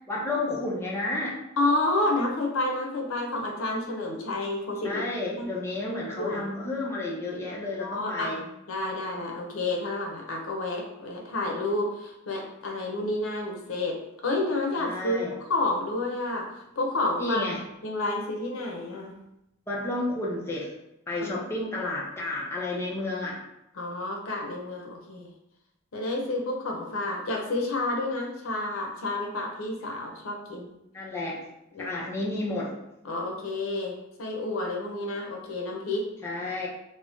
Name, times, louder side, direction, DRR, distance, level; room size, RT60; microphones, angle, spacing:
voice 1, 0.1-1.4 4.8-8.4 14.8-15.3 17.2-17.6 19.7-20.7 21.1-23.4 30.9-31.4 31.8-32.7 36.2-36.7, left 2 dB, 10° left, -5 dB, 0.5 m, -31 dB
voice 2, 1.6-5.0 5.4-5.5 6.2-6.5 7.8-17.4 17.8-19.2 21.2-21.3 23.7-25.3 25.9-30.7 31.7-31.9 33.0-36.1, left 2 dB, 85° left, 0 dB, 0.6 m, -30 dB
2.5 x 2.0 x 3.4 m, 0.84 s
head